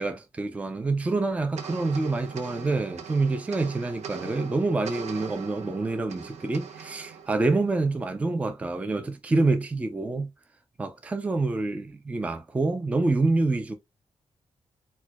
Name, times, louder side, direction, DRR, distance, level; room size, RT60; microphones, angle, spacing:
voice 1, 0.0-10.3 10.8-13.8, right 3 dB, 10° right, 0.3 m, -27 dB
sound 1, 1.6-8.2, right 7 dB, 90° right, 0.6 m, -41 dB
4.3 x 2.2 x 2.2 m
wide cardioid pair, 165°, 11 cm